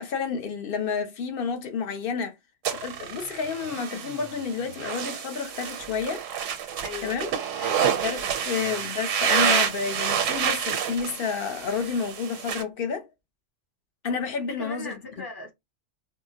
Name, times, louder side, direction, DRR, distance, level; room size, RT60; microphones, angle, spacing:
voice 1, 0.0-2.4 2.7-6.2 7.0-7.3 7.8-13.1 14.0-15.0, left 6 dB, 55° left, 0.8 m, -30 dB
sound 1, 2.7-12.6, right 8 dB, 80° right, 1.0 m, -28 dB
voice 2, 6.8-7.2 7.6-8.0 14.4-15.5, left 3 dB, 20° left, 0.7 m, -38 dB
3.6 x 2.1 x 2.7 m
omnidirectional pair, 1.3 m